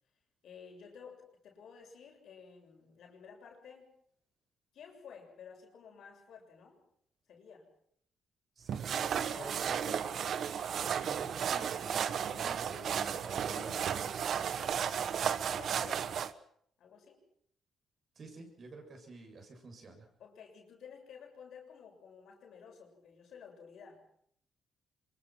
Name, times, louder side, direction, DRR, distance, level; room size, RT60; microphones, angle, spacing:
voice 1, 0.4-3.9 4.7-6.8 7.3-7.7 9.2-10.3 14.3-15.0 15.5-16.1 16.8-17.2 20.2-24.0, left 6 dB, 70° left, 2 dB, 7.0 m, -53 dB
voice 2, 8.6-10.0 11.0-14.1 18.2-20.1, right 2 dB, 45° right, 4 dB, 7.4 m, -49 dB
sound 1, 8.7-16.3, right 8 dB, 60° right, 1.2 m, -34 dB
25.5 x 22.5 x 6.1 m, 0.66 s
cardioid pair, 90°, 0 cm